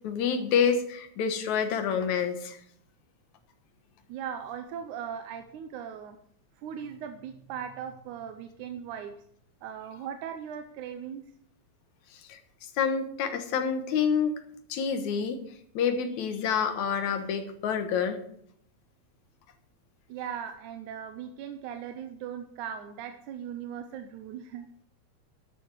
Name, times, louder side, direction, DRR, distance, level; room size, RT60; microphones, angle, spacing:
voice 1, 0.0-2.6 12.1-14.4 14.7-15.4 15.7-18.2, left 6 dB, 75° left, 8 dB, 2.6 m, -28 dB
voice 2, 4.1-6.2 6.6-9.1 9.6-11.2 20.1-24.7, right 8 dB, 85° right, 7 dB, 2.3 m, -39 dB
13.0 x 10.5 x 4.7 m, 0.69 s
omnidirectional pair, 3.4 m